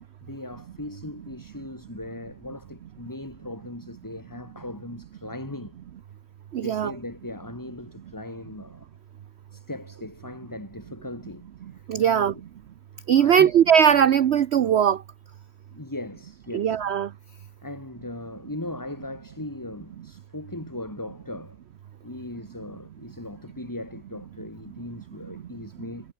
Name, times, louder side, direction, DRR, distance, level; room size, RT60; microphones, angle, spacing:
voice 1, 0.2-5.8 6.6-8.9 9.5-12.4 13.2-13.5 15.7-16.8 17.6-21.6 22.0-26.1, left 1 dB, 10° left, 2.0 m, -38 dB
voice 2, 6.5-6.9 11.9-12.3 13.1-15.0 16.5-17.1, right 8 dB, 60° right, 0.7 m, -19 dB
omnidirectional pair, 1.7 m